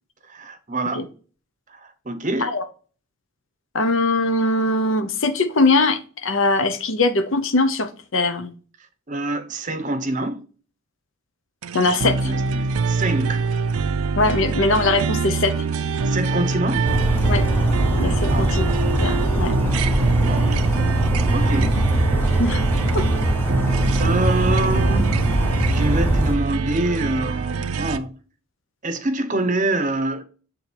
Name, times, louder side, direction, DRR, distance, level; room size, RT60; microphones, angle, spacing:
voice 1, 0.3-1.0 1.7-2.5 9.1-10.4 12.0-13.5 16.0-16.9 18.3-18.5 20.3-20.5 21.3-21.8 23.6-25.2 25.7-28.2 28.8-30.2, right 2 dB, 35° right, 0.8 m, -26 dB
voice 2, 3.7-8.5 11.7-12.3 14.2-15.6 17.2-17.4 18.0-18.7 19.0-19.5 22.4-22.6 22.9-23.1, left 2 dB, 60° left, 0.8 m, -21 dB
sound 1, 11.6-28.0, right 4 dB, 80° right, 0.5 m, -24 dB
Bird vocalization bird call bird song, 16.8-26.3, equal, 10° left, 0.7 m, -22 dB
7.0 x 3.8 x 4.5 m
head